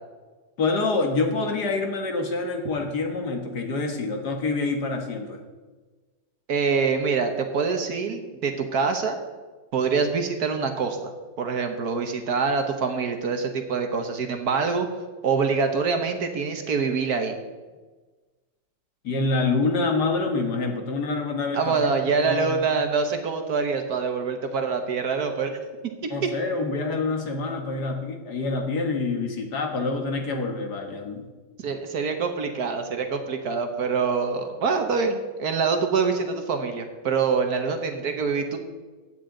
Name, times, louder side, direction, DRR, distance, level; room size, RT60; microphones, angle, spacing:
voice 1, 0.6-5.4 19.0-21.8 22.0-22.6 26.1-31.2, left 3 dB, 60° left, 3 dB, 2.0 m, -26 dB
voice 2, 6.5-9.2 9.7-11.1 11.4-14.9 15.2-17.3 21.5-25.6 26.0-26.3 31.6-38.6, right 5 dB, 60° right, 6 dB, 1.4 m, -25 dB
15.0 x 9.3 x 3.9 m, 1.3 s
omnidirectional pair, 2.0 m